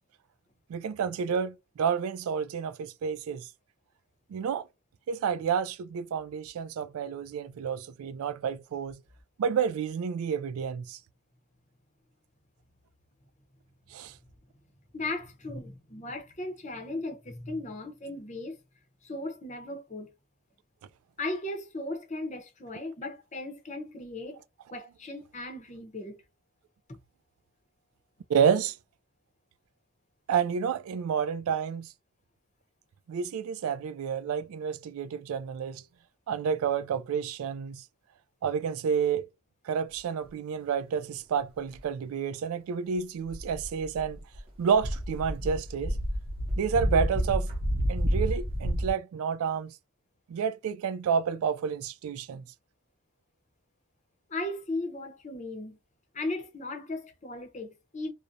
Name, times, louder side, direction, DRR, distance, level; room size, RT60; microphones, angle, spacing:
voice 1, 0.7-3.5 4.3-4.7 5.1-9.0 9.4-11.0 13.9-14.1 28.3-28.8 30.3-31.9 33.1-35.8 36.3-37.8 38.4-39.3 39.7-44.2 44.6-46.0 46.6-47.5 47.9-49.7 50.3-52.4, right 7 dB, 75° right, 0.3 m, -29 dB
voice 2, 14.9-18.6 19.0-20.1 21.2-24.4 24.7-26.2 26.9-27.0 54.3-55.8 56.1-58.1, left 2 dB, 30° left, 0.7 m, -37 dB
sound 1, 43.3-44.4 44.7-48.9, equal, 25° right, 0.8 m, -29 dB
2.5 x 2.0 x 2.7 m
head